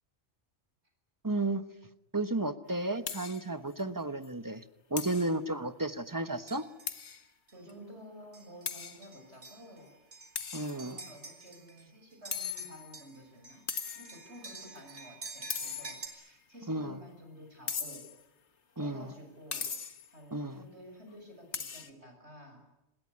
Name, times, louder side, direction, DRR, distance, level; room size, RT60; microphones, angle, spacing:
voice 1, 1.2-1.6 2.1-4.6 4.9-6.6 10.5-11.0 16.7-17.0 18.8-19.1 20.3-20.6, right 2 dB, 20° right, 11 dB, 1.2 m, -33 dB
sound 1, 3.1-3.5 3.8-3.9 4.2-4.3 5.0-5.3 6.9-7.2 7.7-7.8 8.7-9.0 10.4-11.1 12.3-13.0 13.7-14.2 15.5-16.2 17.7-18.2 19.5-20.1 21.5-21.9, left 6 dB, 90° left, 1.7 m, -38 dB
sound 2, 6.5-7.0 7.5-7.6 8.3-8.7 9.0-11.8 12.1-16.1, right 3 dB, 60° right, 4.8 m, -49 dB
voice 2, 7.5-9.9 10.8-13.6 14.0-18.0 18.8-19.7 20.1-22.6, equal, 75° right, 5 dB, 7.0 m, -52 dB
26.5 x 21.0 x 9.8 m, 0.89 s
omnidirectional pair, 1.1 m